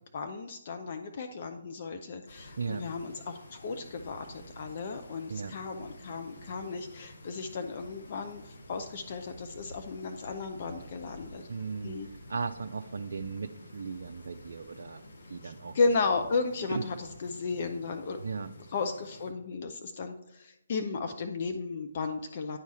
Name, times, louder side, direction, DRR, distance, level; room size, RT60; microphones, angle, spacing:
voice 1, 0.1-11.5 11.8-12.1 15.4-18.2 18.7-22.6, left 4 dB, 45° left, 6 dB, 0.6 m, -34 dB
sound 1, 2.3-19.3, left 1 dB, 60° left, 1.7 m, -50 dB
voice 2, 11.5-12.0 12.3-15.8 16.7-16.8 18.2-18.5, right 5 dB, 60° right, 7 dB, 0.4 m, -37 dB
10.5 x 4.7 x 4.2 m, 0.85 s
figure-of-eight pair, 140°, 0 cm